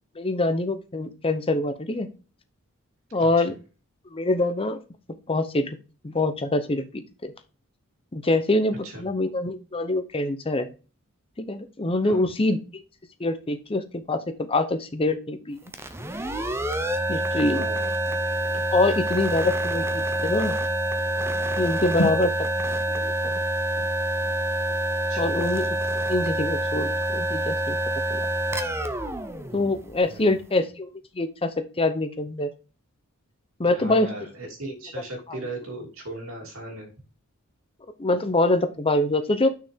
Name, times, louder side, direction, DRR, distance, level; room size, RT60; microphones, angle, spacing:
voice 1, 0.2-2.1 3.1-3.5 4.1-4.8 5.3-5.8 6.0-7.3 8.1-10.7 11.4-12.8 13.2-14.2 14.5-15.6 17.1-17.6 18.7-20.5 21.6-22.3 22.9-23.3 25.2-25.6 26.1-27.8 28.1-28.2 29.5-30.9 31.1-32.5 33.6-34.1 35.3-35.4 38.0-39.5, left 2 dB, 25° left, 10 dB, 0.8 m, -24 dB
voice 2, 3.1-3.4 8.8-9.0 12.0-12.3 17.4-17.9 22.0-22.3 25.1-25.4 30.1-30.4 33.7-36.9, right 1 dB, 65° right, 1 dB, 3.0 m, -37 dB
sound 1, 15.7-30.3, right 1 dB, 10° right, 0.8 m, -27 dB
sound 2, 17.7-26.2 26.6-26.7, left 1 dB, 75° left, 1.5 m, -37 dB
6.7 x 6.4 x 3.6 m, 0.33 s
head